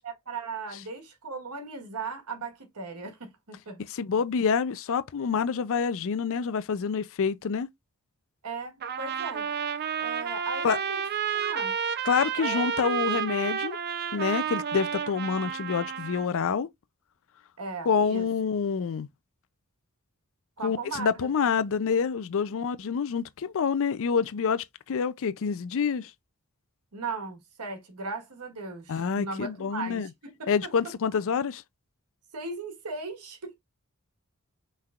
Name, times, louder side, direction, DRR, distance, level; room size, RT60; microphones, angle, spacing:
voice 1, 0.0-3.8 8.4-9.5 10.0-11.0 11.3-11.7 12.3-12.6 17.6-18.3 20.6-21.3 26.9-30.1 30.4-30.7 32.3-33.6, right 4 dB, 90° right, 1.3 m, -37 dB
voice 2, 3.9-7.7 10.6-10.8 12.0-13.8 14.1-16.7 17.9-19.1 20.6-26.1 28.9-30.1 30.5-31.6, left 6 dB, 60° left, 0.4 m, -27 dB
Trumpet, 8.8-16.3, right 8 dB, 45° right, 0.6 m, -31 dB
5.7 x 3.3 x 2.4 m
head